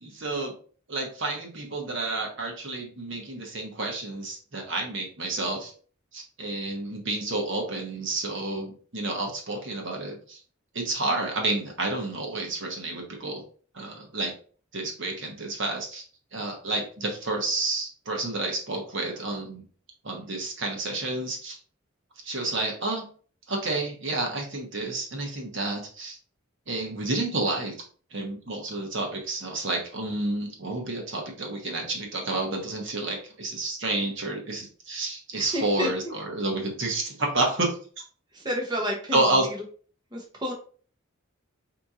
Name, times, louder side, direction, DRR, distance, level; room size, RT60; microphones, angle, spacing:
voice 1, 0.0-0.5 0.9-5.7 6.1-10.4 10.7-13.4 13.7-14.3 14.7-16.0 16.3-19.6 20.0-21.6 22.2-23.1 23.5-26.2 26.7-27.7 28.1-37.8 39.1-39.5, right 2 dB, 60° right, 1 dB, 1.2 m, -30 dB
voice 2, 35.3-35.9 38.3-39.2 40.1-40.5, equal, 20° right, -1 dB, 0.8 m, -30 dB
4.3 x 2.9 x 3.7 m, 0.41 s
head